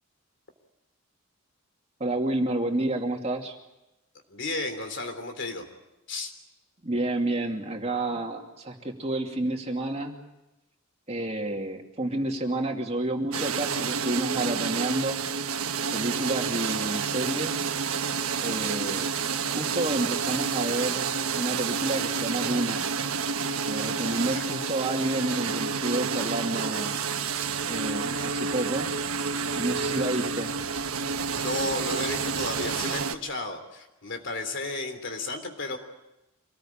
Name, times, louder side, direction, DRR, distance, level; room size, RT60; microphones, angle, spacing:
voice 1, 2.0-3.6 6.8-10.2 11.1-15.2 15.9-17.7 18.4-19.1 19.5-22.8 23.7-27.0 27.7-28.9 29.5-30.5, right 1 dB, 30° right, 2 dB, 2.6 m, -30 dB
voice 2, 4.3-5.6 6.1-6.3 24.1-24.4 31.3-35.8, left 2 dB, 55° left, 6 dB, 3.4 m, -33 dB
sound 1, 13.3-33.2, right 5 dB, 90° right, 1.3 m, -29 dB
26.5 x 19.5 x 8.8 m, 0.94 s
head